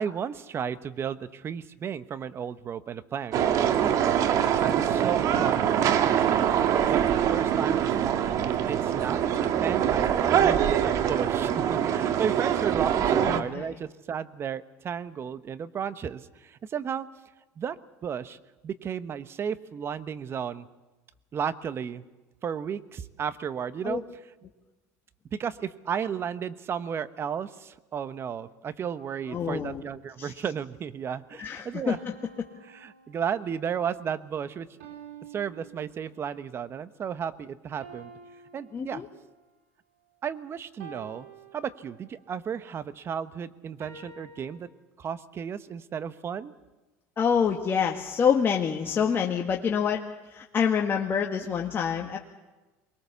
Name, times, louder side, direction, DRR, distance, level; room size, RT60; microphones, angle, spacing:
voice 1, 0.0-3.4 3.8-4.0 4.6-6.5 6.9-7.0 7.3-8.3 8.7-9.2 9.6-17.1 17.6-17.8 18.0-18.4 18.6-20.7 21.3-22.0 22.4-24.0 25.3-32.0 32.7-34.7 35.3-38.1 38.5-39.0 40.2-41.3 41.5-44.7 45.0-46.5, right 7 dB, 35° right, 13 dB, 1.2 m, -33 dB
sound 1, 3.3-13.4, right 9 dB, 50° right, 1.6 m, -24 dB
voice 2, 13.2-13.7 23.8-24.0 29.3-29.8 30.2-30.3 31.4-32.0 38.7-39.1 47.2-50.0 50.3-52.2, left 7 dB, 30° left, 1 dB, 1.8 m, -26 dB
sound 2, 31.9-33.7 34.8-36.4 37.8-39.5 40.8-42.3 43.8-44.6, right 5 dB, 85° right, 5.0 m, -49 dB
23.5 x 21.0 x 7.1 m, 1.2 s
supercardioid pair, 95°, 7 cm